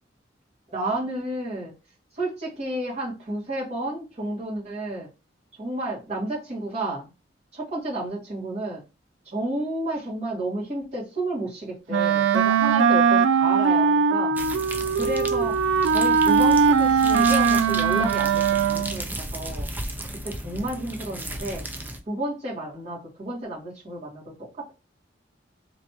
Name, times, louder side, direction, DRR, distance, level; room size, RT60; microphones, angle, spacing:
voice 1, 0.7-1.7 2.1-5.1 5.6-7.1 7.5-8.8 9.3-14.4 15.0-15.6 15.9-19.7 20.2-21.6 22.1-24.7, right 1 dB, 35° right, 2.1 m, -31 dB
Wind instrument woodwind instrument, 11.9-19.1, right 6 dB, 85° right, 0.3 m, -20 dB
sound 1, 14.4-22.0, right 1 dB, 10° right, 0.4 m, -34 dB
3.3 x 3.2 x 2.9 m
head